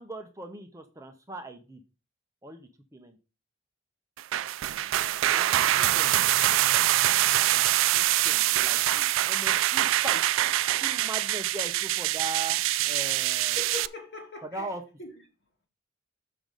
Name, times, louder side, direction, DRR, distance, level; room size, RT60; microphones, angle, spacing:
voice 1, 0.0-1.8 2.4-3.2 5.3-6.3 7.5-7.6 7.9-10.5 10.8-13.6 14.4-14.8, right 2 dB, 15° right, 0.8 m, -40 dB
sound 1, 4.2-13.9, right 14 dB, 80° right, 0.3 m, -24 dB
voice 2, 13.0-14.7 15.0-15.2, left 3 dB, 55° left, 2.5 m, -42 dB
6.2 x 6.0 x 5.2 m
head